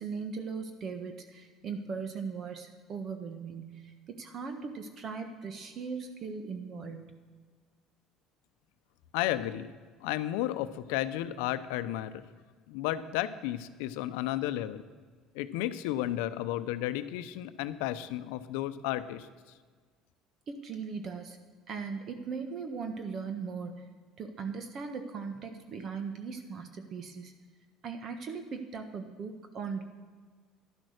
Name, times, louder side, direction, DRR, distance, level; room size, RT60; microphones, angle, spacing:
voice 1, 0.0-7.2 20.5-21.4 21.7-23.9 24.2-27.3 27.8-29.8, right 5 dB, 45° right, 7 dB, 1.3 m, -39 dB
voice 2, 9.1-9.7 10.0-12.2 12.7-14.8 15.3-19.3, left 13 dB, 90° left, 12 dB, 0.7 m, -33 dB
11.0 x 10.5 x 6.5 m, 1.5 s
cardioid pair, 120°, 0 cm